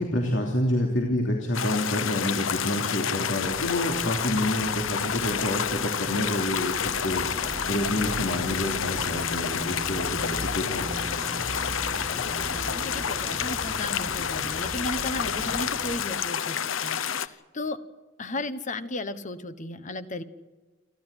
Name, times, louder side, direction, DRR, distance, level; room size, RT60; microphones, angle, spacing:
voice 1, 0.0-7.4 7.7-10.9, left 1 dB, 70° left, 0 dB, 3.1 m, -28 dB
sound 1, 1.5-17.3, left 8 dB, 90° left, 0.8 m, -29 dB
sound 2, 3.4-16.0, right 1 dB, 20° right, 4.5 m, -38 dB
voice 2, 10.2-11.0 11.7-17.8 18.2-20.2, left 2 dB, 40° left, 12 dB, 1.3 m, -36 dB
29.0 x 12.0 x 10.0 m, 1.3 s
head